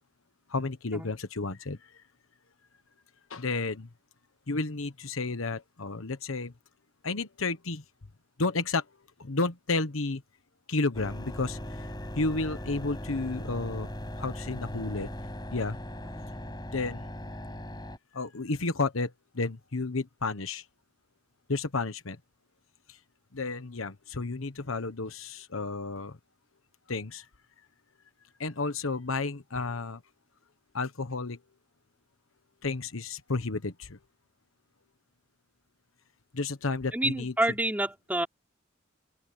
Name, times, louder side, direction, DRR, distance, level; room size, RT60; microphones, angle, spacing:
voice 1, 0.5-2.0 3.3-3.9 4.5-6.5 7.0-7.8 8.4-8.8 9.2-10.2 10.7-13.9 14.2-15.1 15.5-15.8 16.7-17.1 18.1-20.6 21.5-22.2 23.3-26.2 26.9-27.3 28.4-30.0 30.7-31.4 32.6-34.0 36.3-37.3, left 3 dB, 85° left, 1.2 m, -32 dB
sound 1, 10.9-18.0, equal, 20° left, 7.2 m, -39 dB
voice 2, 36.9-38.3, right 1 dB, 10° right, 4.0 m, -28 dB
head